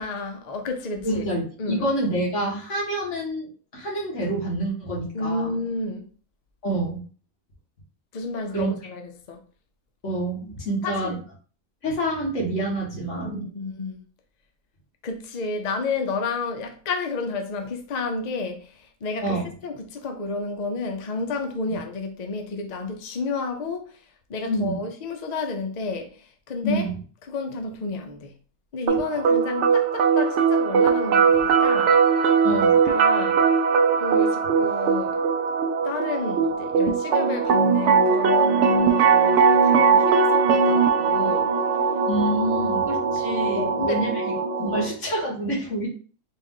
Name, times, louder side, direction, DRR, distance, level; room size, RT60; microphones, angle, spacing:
voice 1, 0.0-1.3 1.6-1.9 5.1-6.1 8.1-9.4 10.8-11.2 13.2-14.0 15.0-26.9 27.2-28.3 28.7-32.3 32.8-33.6 34.0-35.2 35.8-41.5 43.6-44.0 44.6-44.8, left 4 dB, 80° left, 0.3 m, -31 dB
voice 2, 1.0-5.5 6.6-7.0 8.5-8.7 10.0-11.1 11.8-13.4 19.2-19.5 21.7-21.8 24.4-24.8 26.6-26.9 32.4-32.8 42.1-44.2 44.6-45.9, right 1 dB, 50° left, 1.8 m, -27 dB
sound 1, 28.9-44.9, right 5 dB, 65° right, 0.7 m, -20 dB
4.1 x 2.5 x 3.7 m
omnidirectional pair, 1.6 m